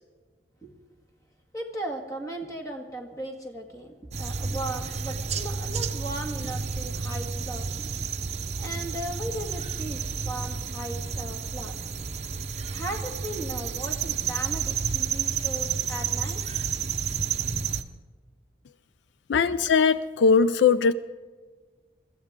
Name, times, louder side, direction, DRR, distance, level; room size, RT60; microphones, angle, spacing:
voice 1, 1.5-8.1 8.6-11.8 12.7-16.4 19.3-19.7, right 1 dB, 20° left, 2 dB, 1.8 m, -37 dB
sound 1, 4.1-17.8, right 6 dB, 35° right, 0.7 m, -31 dB
voice 2, 19.3-20.9, left 5 dB, 80° left, 15 dB, 0.4 m, -20 dB
23.0 x 15.0 x 3.6 m, 1.4 s
head